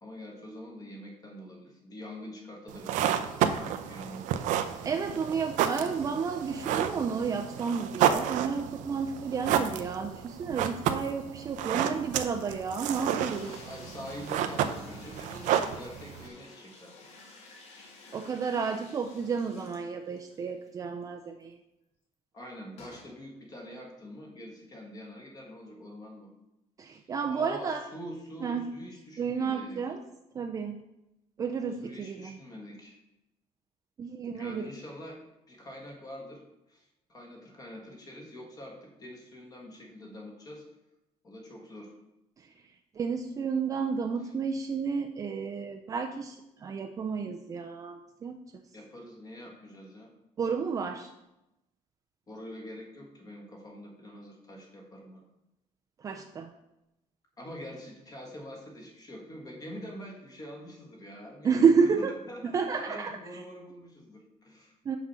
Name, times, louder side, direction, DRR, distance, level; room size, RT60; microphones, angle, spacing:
voice 1, 0.0-4.2 13.6-16.9 22.3-26.3 26.9-29.9 31.8-33.0 34.3-35.2 35.5-36.4 36.7-40.6 41.2-41.9 44.2-44.3 48.7-50.1 52.3-55.3 57.4-64.7, equal, 30° left, 0 dB, 1.5 m, -45 dB
sound 1, 2.7-16.3, right 9 dB, 80° right, 0.6 m, -31 dB
voice 2, 4.8-13.7 18.1-21.5 26.8-27.8 28.4-28.6 29.2-30.0 30.3-30.8 31.4-32.4 34.0-34.7 43.0-48.4 50.4-51.1 56.0-56.5 61.4-62.1 62.4-63.2 64.9-65.0, right 5 dB, 25° right, 4 dB, 0.4 m, -31 dB
sound 2, 13.2-20.4 20.7-20.8 21.0-21.1 22.8-23.1, left 2 dB, 55° left, 1.8 m, -51 dB
6.1 x 5.9 x 5.5 m, 0.91 s
cardioid pair, 155°, 13 cm